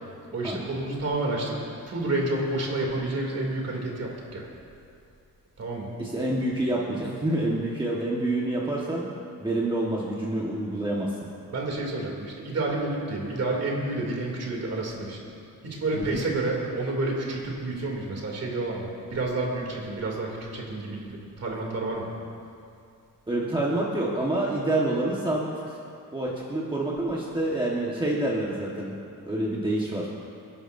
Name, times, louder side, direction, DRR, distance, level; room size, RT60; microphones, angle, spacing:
voice 1, 0.3-1.6 1.9-4.4 5.6-5.9 11.5-15.2 15.6-21.1 21.4-22.1, right 2 dB, 45° right, -2 dB, 2.8 m, -29 dB
voice 2, 6.0-9.1 9.4-11.1 15.9-16.2 23.3-25.8 26.1-28.9 29.2-30.2, right 1 dB, 15° right, -5 dB, 1.4 m, -27 dB
29.0 x 11.0 x 2.7 m, 2.5 s
wide cardioid pair, 165°, 34 cm